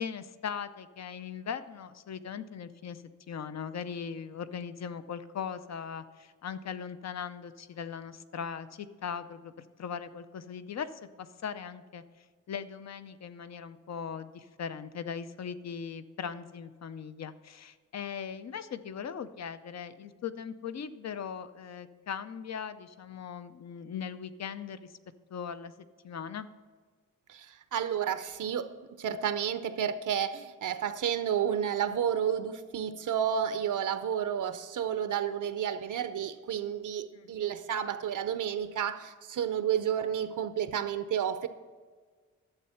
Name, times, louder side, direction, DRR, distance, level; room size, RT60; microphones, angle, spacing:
voice 1, 0.0-25.0 25.3-25.7 26.0-26.5 37.1-37.3, left 7 dB, 55° left, 12 dB, 0.6 m, -39 dB
voice 2, 27.3-41.5, right 9 dB, 70° right, 11 dB, 0.6 m, -31 dB
11.5 x 7.8 x 5.7 m, 1.5 s
wide cardioid pair, 165°, 32 cm